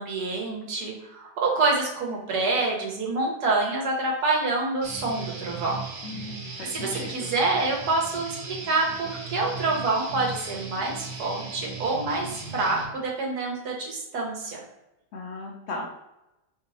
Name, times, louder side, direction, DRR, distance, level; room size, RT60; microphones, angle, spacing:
voice 1, 0.0-5.8 6.1-6.3 6.6-14.6, right 3 dB, 70° right, -1 dB, 1.5 m, -27 dB
Guitar, 4.8-12.8, right 4 dB, 50° right, 1.0 m, -38 dB
voice 2, 6.0-7.3 15.1-15.9, left 2 dB, 70° left, 0 dB, 0.6 m, -37 dB
3.3 x 2.9 x 4.1 m, 0.93 s
omnidirectional pair, 1.8 m